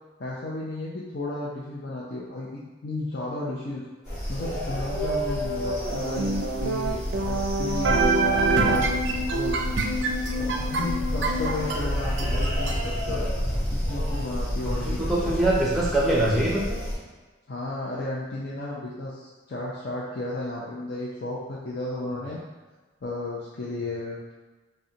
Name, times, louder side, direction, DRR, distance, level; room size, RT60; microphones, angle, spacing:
voice 1, 0.2-3.8 4.3-8.1 8.6-8.9 9.3-9.6 10.4-13.3 13.7-15.4 17.5-22.4 23.0-24.3, left 2 dB, 55° left, -6 dB, 0.5 m, -33 dB
sound 1, 4.1-16.9, equal, 35° left, 1.5 m, -30 dB
sound 2, 5.9-12.8, right 2 dB, 70° right, 0.4 m, -26 dB
voice 2, 14.7-16.8, right 1 dB, ahead, -4 dB, 0.6 m, -24 dB
5.2 x 2.2 x 2.8 m, 1.3 s
head